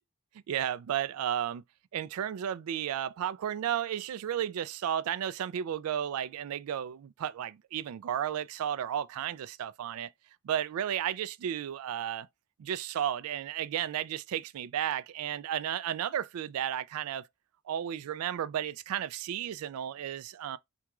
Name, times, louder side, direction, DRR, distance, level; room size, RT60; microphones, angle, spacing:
voice 1, 0.5-1.6 1.9-10.1 10.4-12.3 12.6-17.3 17.7-20.6, right 10 dB, 75° right, 0.3 m, -33 dB
3.5 x 2.3 x 2.9 m
head